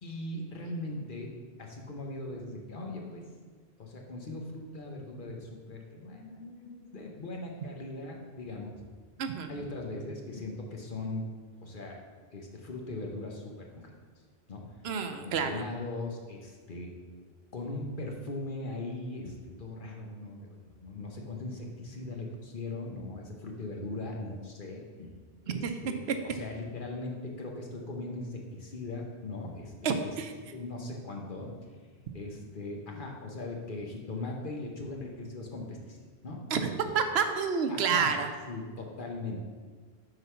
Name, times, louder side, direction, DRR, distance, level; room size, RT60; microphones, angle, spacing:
voice 1, 0.0-1.3 1.6-3.3 3.8-8.8 9.5-11.2 11.6-12.0 12.3-13.9 14.5-14.8 15.2-16.9 17.5-25.1 25.4-30.2 30.5-31.5 32.1-36.0 36.2-36.4 37.7-38.1 38.5-39.4, left 2 dB, 55° left, 1 dB, 1.2 m, -39 dB
voice 2, 9.2-9.5 14.8-15.6 25.6-26.2 29.8-30.3 36.5-36.6 36.9-38.3, right 6 dB, 80° right, 7 dB, 0.9 m, -29 dB
7.9 x 4.0 x 5.7 m, 1.5 s
omnidirectional pair, 1.1 m